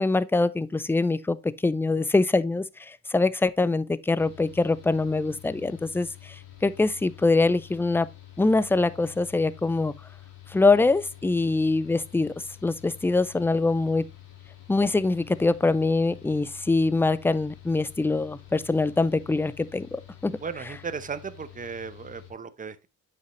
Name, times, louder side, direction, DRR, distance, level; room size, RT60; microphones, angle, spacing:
voice 1, 0.0-8.1 8.4-9.9 10.5-12.3 12.6-14.1 14.7-20.8, left 3 dB, 10° left, 0.4 m, -24 dB
Mechanical fan, 4.2-22.3, left 13 dB, 85° left, 2.8 m, -48 dB
voice 2, 20.4-22.9, right 5 dB, 25° right, 0.8 m, -36 dB
8.1 x 5.8 x 3.0 m
cardioid pair, 90°, 30 cm